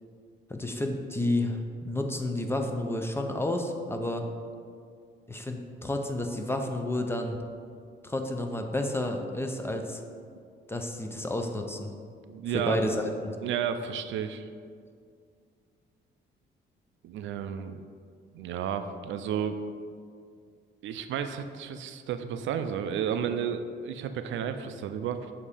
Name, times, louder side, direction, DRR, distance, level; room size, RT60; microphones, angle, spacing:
voice 1, 0.5-4.3 5.3-7.4 8.0-10.0 10.7-11.9 12.5-13.0 13.2-13.4, left 1 dB, 10° left, 4 dB, 0.6 m, -31 dB
voice 2, 12.3-12.8 13.4-14.5 17.0-17.8 18.3-19.6 20.8-25.3, right 8 dB, 75° right, 9 dB, 0.4 m, -32 dB
7.3 x 2.8 x 4.9 m, 2.2 s
cardioid pair, 90°, 20 cm